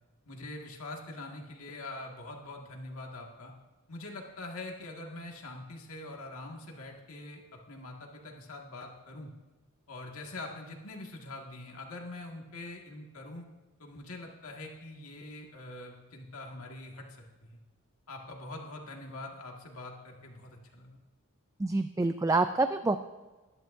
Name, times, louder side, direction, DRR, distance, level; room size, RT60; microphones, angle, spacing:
voice 1, 0.3-3.5 3.9-9.3 9.9-13.5 13.8-17.2 17.5-17.6 18.1-21.0, left 2 dB, 80° left, 0 dB, 1.9 m, -44 dB
voice 2, 21.6-23.0, right 3 dB, 15° right, 9 dB, 0.3 m, -27 dB
21.5 x 11.0 x 2.6 m, 1.2 s
head